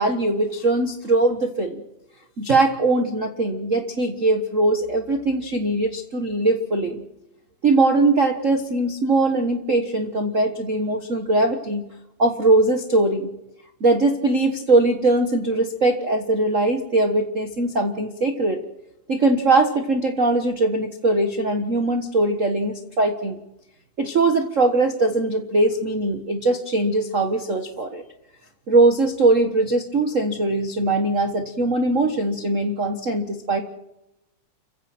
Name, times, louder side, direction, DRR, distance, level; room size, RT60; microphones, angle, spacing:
voice 1, 0.0-1.8 2.4-7.0 7.6-11.9 12.2-13.3 13.8-18.6 19.1-23.4 24.0-28.0 28.7-33.6, right 2 dB, 50° right, 6 dB, 0.9 m, -21 dB
29.5 x 16.0 x 6.0 m, 0.89 s
omnidirectional pair, 3.7 m